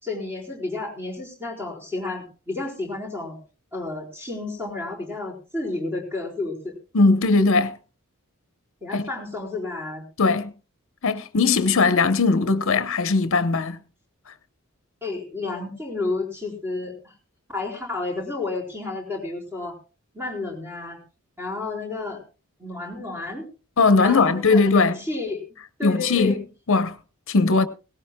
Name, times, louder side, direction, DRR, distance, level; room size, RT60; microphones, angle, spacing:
voice 1, 0.0-3.4 3.7-6.7 8.8-10.0 15.0-17.1 17.5-19.8 20.1-21.0 21.4-22.2 22.6-23.5 24.0-25.4 25.8-26.3, left 3 dB, 10° right, 4.4 m, -31 dB
voice 2, 6.9-7.7 8.9-9.0 10.2-10.5 11.0-13.8 23.8-24.9 25.8-26.4 26.7-27.0 27.3-27.7, left 4 dB, 65° left, 0.9 m, -19 dB
18.5 x 17.5 x 2.2 m
head